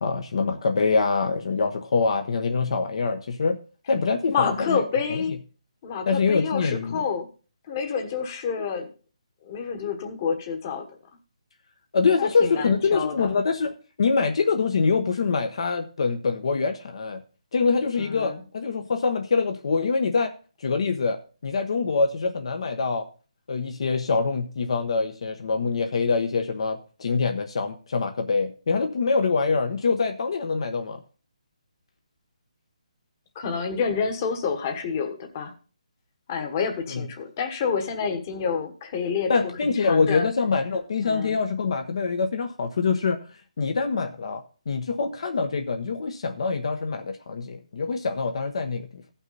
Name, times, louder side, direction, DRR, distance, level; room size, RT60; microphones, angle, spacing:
voice 1, 0.0-3.6 3.9-4.8 6.1-7.0 11.9-17.2 17.5-20.3 20.6-21.2 21.4-23.1 23.5-31.0 36.9-37.0 39.3-43.2 43.6-49.0, left 4 dB, 55° left, 5 dB, 1.0 m, -24 dB
voice 2, 4.3-5.4 5.8-7.3 7.7-8.9 9.4-10.9 12.2-13.4 18.0-18.4 33.3-35.5 36.3-39.3 39.6-40.3 41.0-41.4, left 6 dB, 25° left, 5 dB, 1.3 m, -28 dB
15.0 x 5.9 x 4.0 m, 0.37 s
hypercardioid pair, 170°, 4 cm